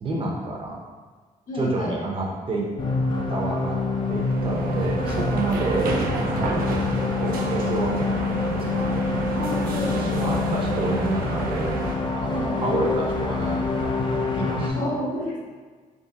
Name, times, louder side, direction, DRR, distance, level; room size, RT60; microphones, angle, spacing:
voice 1, 0.0-0.8 1.5-2.7 3.3-3.8 4.1-6.7 7.1-9.4 9.9-11.7 12.1-14.0 14.4-14.8, right 2 dB, 35° right, -2 dB, 0.6 m, -29 dB
voice 2, 1.5-2.0 9.3-10.4 12.3-12.8 14.7-15.4, equal, 65° left, -6 dB, 1.2 m, -30 dB
sound 1, 2.8-14.7, left 3 dB, 35° left, 0.4 m, -26 dB
sound 2, 4.0-12.0, right 3 dB, 90° right, 0.5 m, -30 dB
3.6 x 3.3 x 2.7 m, 1.4 s
wide cardioid pair, 145°, 15 cm